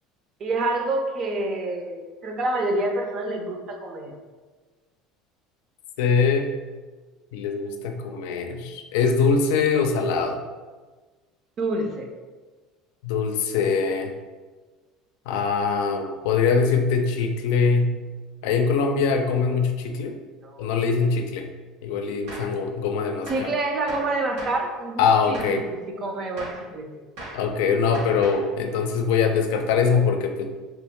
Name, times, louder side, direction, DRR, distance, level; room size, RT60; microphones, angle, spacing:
voice 1, 0.4-4.1 11.6-12.1 20.4-20.7 23.3-27.0, right 2 dB, 40° right, 3 dB, 0.5 m, -28 dB
voice 2, 6.0-6.5 7.3-10.4 13.0-14.1 15.3-17.9 18.4-20.2 20.6-21.5 21.8-23.5 25.0-25.6 27.3-30.5, left 5 dB, 85° left, 4 dB, 0.4 m, -22 dB
Gunshot gunfire, 22.3-22.6 23.3-23.6 23.9-24.7 25.3-25.7 26.4-26.7 27.2-27.5 27.9-28.5, right 1 dB, 70° right, 1.2 m, -38 dB
3.0 x 2.9 x 3.5 m, 1.4 s
cardioid pair, 140°, 0 cm